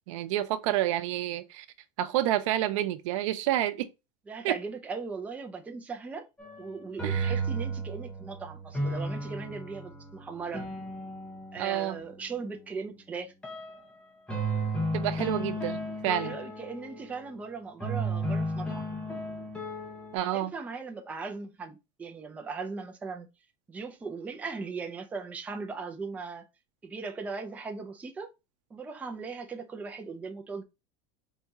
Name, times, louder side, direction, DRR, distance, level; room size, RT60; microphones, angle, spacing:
voice 1, 0.1-1.7 2.0-3.9 4.4-4.6 7.0-7.3 11.6-12.0 14.9-16.4 20.1-20.5, right 13 dB, 85° right, 0.6 m, -29 dB
voice 2, 4.3-6.3 6.6-10.7 11.5-13.3 16.2-18.9 20.3-23.3 23.7-26.4 26.8-28.3 28.7-30.6, right 4 dB, 10° right, 0.4 m, -38 dB
sound 1, 6.4-12.4 13.4-13.8 14.3-17.3 17.8-20.2, right 2 dB, 5° left, 0.8 m, -34 dB
4.0 x 2.7 x 3.5 m
cardioid pair, 170°, 16 cm